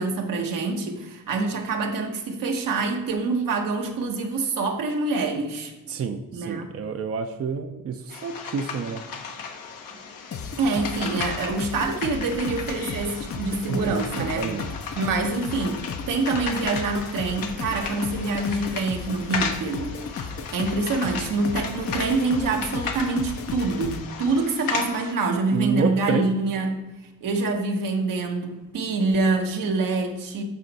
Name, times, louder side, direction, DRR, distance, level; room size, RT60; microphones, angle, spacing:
voice 1, 0.0-5.7 6.3-6.7 10.6-14.4 14.9-20.0 20.5-26.9 27.2-30.4, right 3 dB, 80° right, 3 dB, 1.1 m, -26 dB
voice 2, 5.9-9.0 13.7-14.7 25.5-26.3, right 6 dB, 45° right, 7 dB, 0.6 m, -29 dB
sound 1, 8.1-25.1, left 5 dB, 80° left, 1.2 m, -35 dB
sound 2, 10.3-24.0, left 5 dB, 45° left, 0.6 m, -35 dB
11.0 x 4.4 x 4.1 m, 1.1 s
cardioid pair, 95°, 33 cm